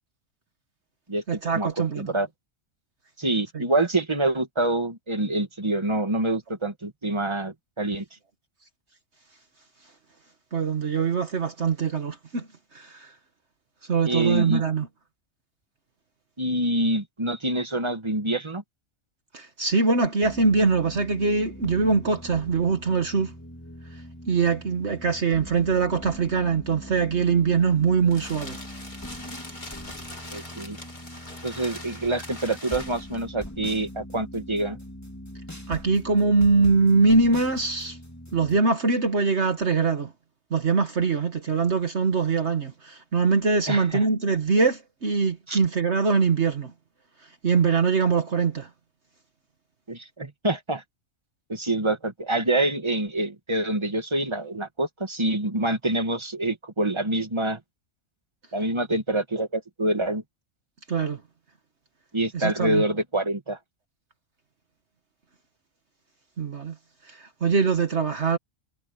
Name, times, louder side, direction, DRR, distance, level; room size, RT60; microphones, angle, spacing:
voice 1, 1.3-2.0 3.5-3.6 10.5-13.1 13.9-14.9 19.3-23.3 24.3-28.6 35.7-38.0 38.3-40.1 40.5-46.7 47.4-48.7 60.9-61.2 62.3-62.8 66.4-66.8 67.1-68.4, right 4 dB, 55° right, 1.7 m, -23 dB
voice 2, 2.0-2.3 3.2-8.0 14.0-14.6 16.4-18.6 30.3-30.8 31.4-34.8 43.7-43.9 45.5-45.6 49.9-50.8 51.5-57.6 58.5-60.2 62.1-63.6, right 1 dB, 20° right, 2.2 m, -26 dB
sound 1, 20.2-38.6, equal, 10° left, 3.1 m, -42 dB
sound 2, 27.6-33.3, left 1 dB, 35° left, 4.0 m, -42 dB
omnidirectional pair, 1.4 m